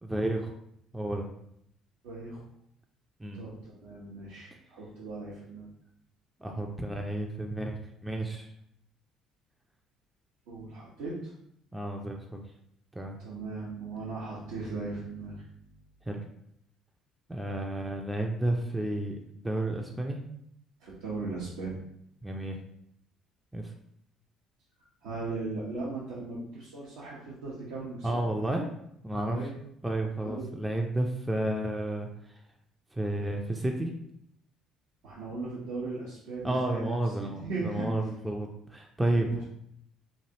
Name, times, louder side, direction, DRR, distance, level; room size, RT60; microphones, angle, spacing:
voice 1, 0.0-0.5 0.9-1.3 3.2-3.4 6.4-8.5 11.7-12.4 13.0-13.2 16.0-16.2 17.3-20.2 22.2-22.6 23.5-23.7 28.0-28.7 29.0-29.4 29.8-32.3 32.9-33.9 36.4-39.4, right 1 dB, 10° right, 1 dB, 0.4 m, -31 dB
voice 2, 2.0-2.4 3.3-5.7 10.5-11.3 13.2-15.4 20.8-21.8 25.0-28.2 29.3-29.5 30.2-30.5 35.0-36.9 37.2-37.9 39.1-39.4, right 3 dB, 80° right, -8 dB, 0.7 m, -38 dB
3.2 x 2.4 x 2.8 m, 0.73 s
hypercardioid pair, 65°, 0 cm